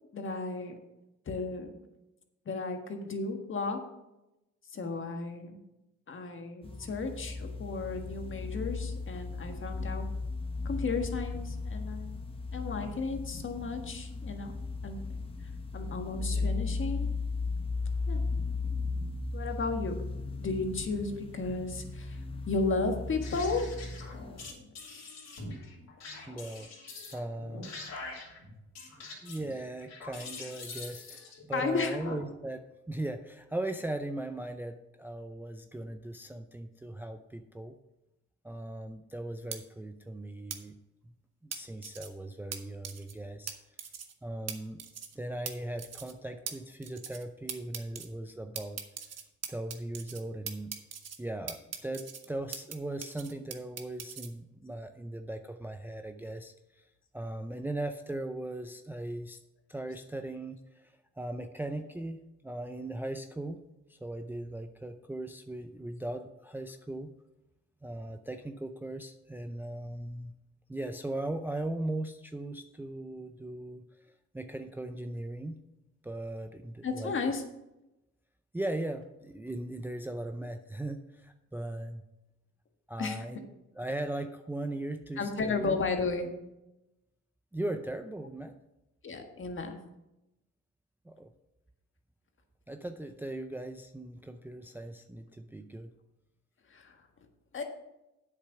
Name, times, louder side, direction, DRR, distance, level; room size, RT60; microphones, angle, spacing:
voice 1, 0.1-0.8 1.2-1.8 2.4-3.8 4.7-5.6 6.1-10.0 10.6-12.1 12.5-14.5 14.8-15.0 15.7-17.1 18.1-18.2 19.3-20.0 20.4-22.2 22.5-23.6 31.5-32.0 61.8-61.9 76.8-77.4 83.0-83.3 85.2-86.3 89.0-89.7 96.7-97.0 97.5-97.6, left 4 dB, 40° left, 5 dB, 1.5 m, -34 dB
sound 1, 6.6-24.5, left 3 dB, 20° left, 1.2 m, -36 dB
sound 2, 23.2-32.1, left 3 dB, 60° left, 3.0 m, -45 dB
voice 2, 26.3-26.8 27.1-27.7 29.0-37.8 38.4-40.8 41.4-43.6 44.2-44.8 45.1-48.8 49.5-50.8 51.2-56.8 57.1-59.4 59.7-63.6 63.9-67.1 67.8-70.3 70.7-74.1 74.3-75.6 76.0-77.2 78.5-82.0 82.9-83.5 83.7-85.8 87.5-88.5 91.1-91.3 92.7-95.9, right 1 dB, 5° right, 7 dB, 0.5 m, -38 dB
sound 3, 39.5-39.6 40.5-40.6 41.5-42.1 42.5-42.6 42.8-43.1 43.5-43.6 43.8-44.1 44.5-44.6 44.8-45.1 45.5-45.6 45.8-46.1 46.5-46.6 46.8-47.2 47.5-48.1 48.5-50.2 50.5-51.2 51.5-52.7 53.0-54.3, right 8 dB, 55° right, 1.2 m, -40 dB
8.1 x 6.7 x 5.7 m, 0.95 s
cardioid pair, 90°, 30 cm